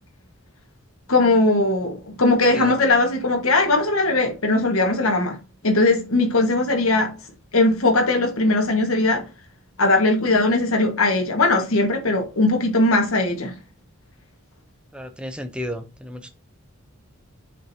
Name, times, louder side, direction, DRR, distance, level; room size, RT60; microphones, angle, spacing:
voice 1, 1.1-5.4 5.6-7.1 7.5-9.2 9.8-13.5, left 2 dB, 85° left, 1.6 m, -19 dB
voice 2, 2.4-2.8 14.9-16.3, equal, 5° right, 0.6 m, -33 dB
7.6 x 5.1 x 2.8 m
head